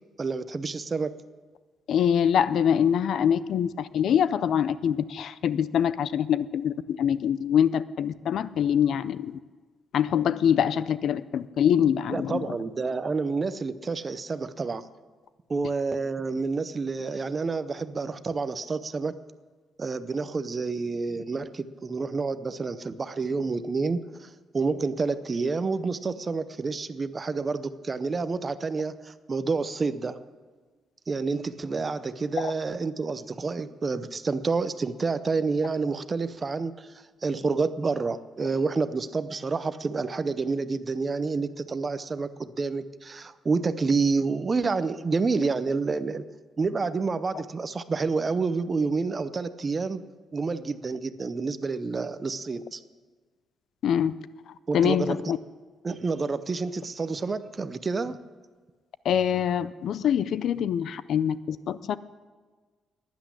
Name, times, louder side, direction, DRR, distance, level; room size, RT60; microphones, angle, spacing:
voice 1, 0.2-1.2 12.1-14.9 15.5-19.2 19.8-30.2 31.1-46.2 46.6-50.0 50.3-52.8 54.7-55.2 55.8-58.2, right 4 dB, 25° right, 13 dB, 0.6 m, -29 dB
voice 2, 1.9-9.4 9.9-12.5 32.4-32.5 53.8-54.1 54.5-55.4 59.0-62.0, left 9 dB, 60° left, 16 dB, 0.5 m, -24 dB
12.0 x 10.5 x 9.8 m, 1.4 s
cardioid pair, 165°, 0 cm